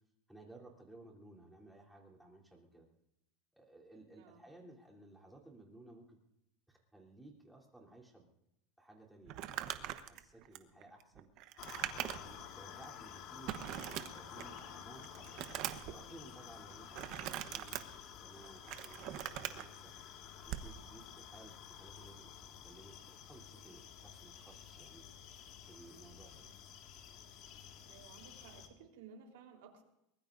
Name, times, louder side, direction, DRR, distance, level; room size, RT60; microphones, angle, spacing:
voice 1, 0.3-2.9 3.5-6.2 6.7-8.3 8.8-9.6 10.0-11.3 11.9-15.5 15.9-19.9 20.5-25.1 25.6-26.5, right 2 dB, 5° right, -2 dB, 3.4 m, -57 dB
voice 2, 4.1-4.4 16.7-16.8 26.4-26.5 27.8-29.8, right 6 dB, 75° right, 1 dB, 3.9 m, -57 dB
Crumpling crinkling, 9.3-12.4 12.8-12.9 13.5-14.6 15.0-15.9 16.9-17.8 18.4-19.6 20.4-20.7, right 13 dB, 55° right, 1.1 m, -41 dB
sound 1, 11.6-28.7, left 8 dB, 55° left, 2.1 m, -52 dB
23.5 x 20.5 x 2.7 m, 0.82 s
supercardioid pair, 130°, 0 cm